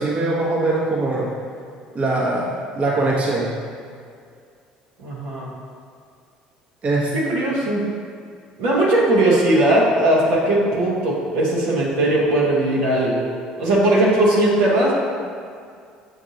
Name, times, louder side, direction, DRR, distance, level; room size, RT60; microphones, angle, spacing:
voice 1, 0.0-1.3 1.9-3.6 6.8-7.1, right 2 dB, 40° right, -5 dB, 1.0 m, -22 dB
voice 2, 5.0-5.5 7.1-7.8 8.6-13.2 13.6-14.9, right 1 dB, 80° right, -6 dB, 0.9 m, -18 dB
6.4 x 2.6 x 2.7 m, 2.3 s
supercardioid pair, 80°, 3 cm